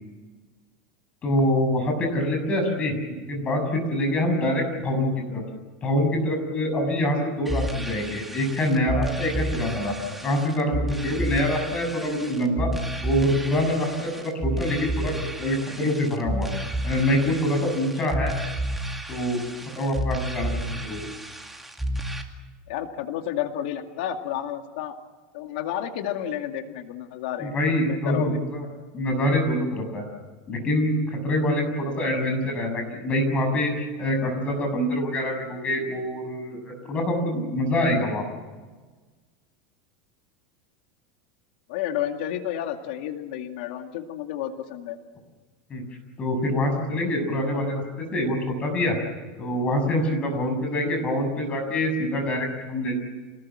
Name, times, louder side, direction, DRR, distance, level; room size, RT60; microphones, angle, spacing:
voice 1, 1.2-2.9 3.3-5.4 5.8-9.9 10.2-12.7 13.0-18.3 19.1-21.1 27.4-28.7 28.9-30.0 30.5-38.2 45.7-45.8 46.2-49.0 49.4-53.0, left 1 dB, 25° left, 4 dB, 7.0 m, -25 dB
sound 1, 7.5-22.2, right 1 dB, 5° right, 2.3 m, -31 dB
voice 2, 22.7-24.9 25.3-27.5 27.9-28.4 41.7-45.0, left 11 dB, 70° left, 6 dB, 2.2 m, -31 dB
27.5 x 20.0 x 7.6 m, 1.3 s
supercardioid pair, 160°, 5 cm